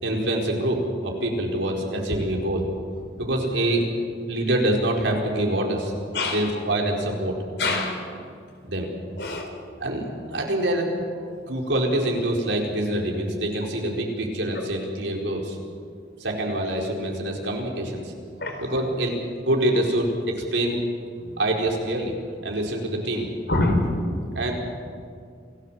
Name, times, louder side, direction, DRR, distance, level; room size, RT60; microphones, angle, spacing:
voice 1, 0.0-2.6 3.1-3.8 4.3-5.9 6.3-7.3 8.6-8.9 9.8-10.8 11.5-15.6 16.2-18.1 18.6-20.1 20.5-20.8 21.4-23.3 24.3-24.5, right 1 dB, 90° right, 0 dB, 4.7 m, -25 dB
voice 2, 6.1-6.5 7.6-8.0 9.2-9.5 18.4-18.6 21.2-21.4 23.5-23.9, left 2 dB, 65° left, 4 dB, 4.5 m, -25 dB
28.0 x 18.0 x 7.6 m, 2.2 s
head